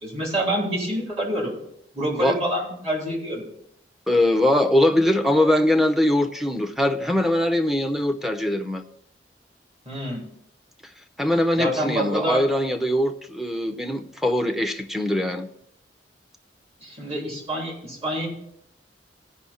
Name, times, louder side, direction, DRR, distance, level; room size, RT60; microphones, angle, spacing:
voice 1, 0.0-1.5 1.9-3.4 9.8-10.2 11.6-12.4 16.8-18.3, right 1 dB, 35° right, -2 dB, 3.2 m, -27 dB
voice 2, 4.1-8.8 11.2-15.5, left 1 dB, ahead, 4 dB, 0.6 m, -22 dB
15.5 x 5.5 x 4.3 m, 0.74 s
head